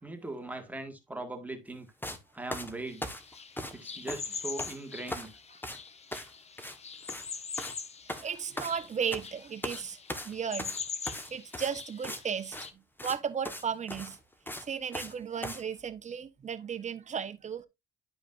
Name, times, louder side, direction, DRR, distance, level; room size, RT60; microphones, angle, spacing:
voice 1, 0.0-1.9 2.3-3.1 3.7-5.3, right 2 dB, 5° right, 1.8 m, -40 dB
sound 1, 2.0-2.2 2.5-3.8 4.1-4.8 5.1-5.3 5.6-5.8 6.1-6.3 6.6-6.8 7.0-7.3 7.6-7.8 8.1-9.3 9.6-9.8 10.1-12.2 12.5-12.7 13.0-13.2 13.4-13.6 13.9-15.1 15.4-15.6, left 1 dB, 10° left, 1.2 m, -39 dB
sound 2, 2.9-12.7, left 5 dB, 30° left, 0.9 m, -43 dB
voice 2, 8.1-10.0 10.2-10.7 11.3-12.6 13.0-14.2 14.7-17.7, right 7 dB, 35° right, 1.1 m, -35 dB
11.0 x 5.0 x 2.5 m
cardioid pair, 95°, 21 cm